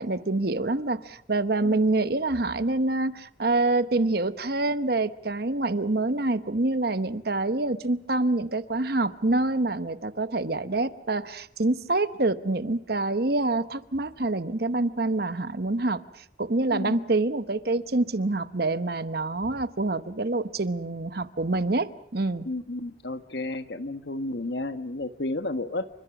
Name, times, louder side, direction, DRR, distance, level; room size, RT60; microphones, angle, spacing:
voice 1, 0.0-22.5, right 2 dB, 50° right, 13 dB, 1.0 m, -26 dB
voice 2, 22.4-25.9, left 2 dB, 60° left, 10 dB, 1.4 m, -32 dB
29.0 x 25.5 x 6.0 m, 0.68 s
head